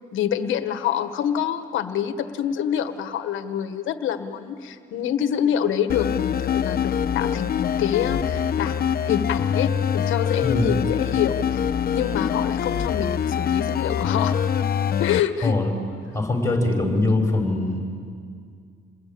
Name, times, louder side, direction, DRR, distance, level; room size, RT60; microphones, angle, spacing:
voice 1, 0.1-11.6 11.9-14.3 15.0-15.6, left 9 dB, 85° left, 9 dB, 1.5 m, -26 dB
sound 1, 5.9-15.2, left 8 dB, 50° left, 0.8 m, -24 dB
voice 2, 10.4-10.8 15.4-15.7 16.1-17.8, left 2 dB, 15° left, 2 dB, 5.9 m, -22 dB
28.0 x 21.0 x 8.8 m, 2.2 s
cardioid pair, 90°, 20 cm